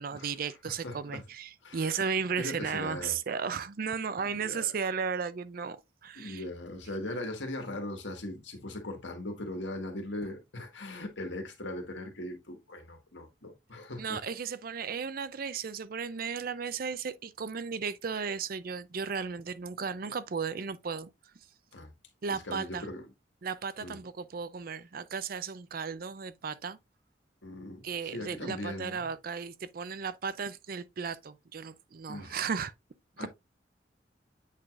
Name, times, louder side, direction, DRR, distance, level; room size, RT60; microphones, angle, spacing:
voice 1, 0.0-5.8 6.0-6.4 14.0-21.1 22.2-22.8 23.4-26.8 27.8-32.7 33.2-33.3, right 6 dB, 50° right, 0.5 m, -35 dB
voice 2, 0.6-1.2 1.6-2.1 2.4-3.2 4.3-4.7 6.1-14.2 21.7-21.9 22.3-23.1 23.8-24.0 27.4-29.1 32.1-32.4 33.2-33.3, left 1 dB, 85° left, 1.7 m, -39 dB
8.2 x 4.8 x 2.4 m
head